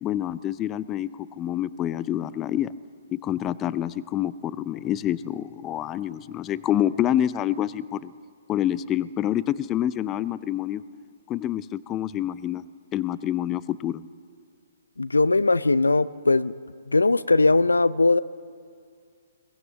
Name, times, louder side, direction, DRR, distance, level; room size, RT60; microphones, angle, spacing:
voice 1, 0.0-2.7 3.1-8.1 8.5-10.8 11.3-12.6 12.9-14.0, left 11 dB, 20° left, 17 dB, 0.5 m, -27 dB
voice 2, 15.0-16.5 16.9-18.2, left 3 dB, 80° left, 18 dB, 0.6 m, -20 dB
22.0 x 19.5 x 7.2 m, 2.2 s
figure-of-eight pair, 125°, 0 cm